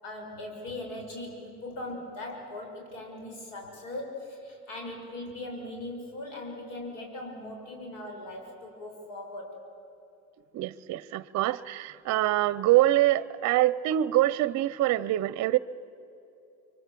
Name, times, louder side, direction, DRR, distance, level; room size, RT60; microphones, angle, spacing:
voice 1, 0.0-9.5 11.5-11.6, left 2 dB, 80° left, 1 dB, 6.5 m, -39 dB
voice 2, 10.5-15.6, right 14 dB, 55° right, 18 dB, 0.6 m, -25 dB
25.5 x 23.5 x 7.5 m, 2.8 s
cardioid pair, 105°, 33 cm